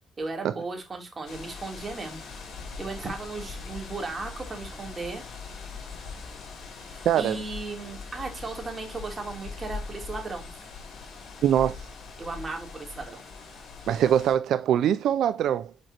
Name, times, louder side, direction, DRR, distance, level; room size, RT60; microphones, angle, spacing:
voice 1, 0.2-2.2 2.8-5.2 6.9-10.5 12.2-13.2, right 3 dB, 30° right, 3.2 m, -36 dB
sound 1, 1.3-14.3, left 4 dB, 60° left, 3.7 m, -41 dB
voice 2, 7.1-7.4 11.4-11.8 13.9-15.7, right 10 dB, 75° right, 0.4 m, -23 dB
7.8 x 5.3 x 2.9 m
cardioid pair, 90°, 0 cm